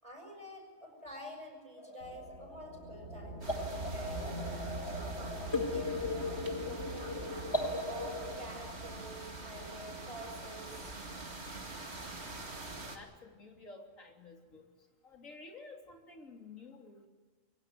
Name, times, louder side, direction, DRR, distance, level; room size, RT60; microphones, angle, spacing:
voice 1, 0.0-3.4 3.9-7.4 7.8-11.0, equal, 25° right, 2 dB, 6.0 m, -49 dB
sound 1, 1.8-8.5, left 2 dB, 20° left, 1.8 m, -38 dB
sound 2, 2.0-12.0, right 2 dB, 70° right, 3.8 m, -45 dB
sound 3, 3.4-13.0, right 2 dB, 55° right, 2.6 m, -45 dB
voice 2, 12.9-14.7 15.0-17.1, left 3 dB, 80° left, 2 dB, 3.5 m, -52 dB
23.5 x 16.5 x 9.4 m, 1.3 s
omnidirectional pair, 1.4 m